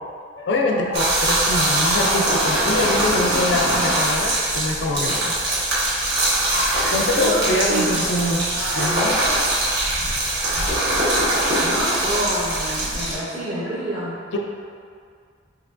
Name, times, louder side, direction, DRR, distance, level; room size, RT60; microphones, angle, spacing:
voice 1, 0.4-5.3 5.7-6.1 6.5-8.5 8.8-9.2 10.6-10.7 14.3-14.4, left 2 dB, 65° left, 1 dB, 0.4 m, -24 dB
sound 1, 0.9-13.1, right 1 dB, 60° right, 1.2 m, -22 dB
voice 2, 7.0-8.0 8.5-9.5 11.6-14.2, equal, 30° right, -10 dB, 0.5 m, -28 dB
4.5 x 3.0 x 2.5 m, 2.2 s
head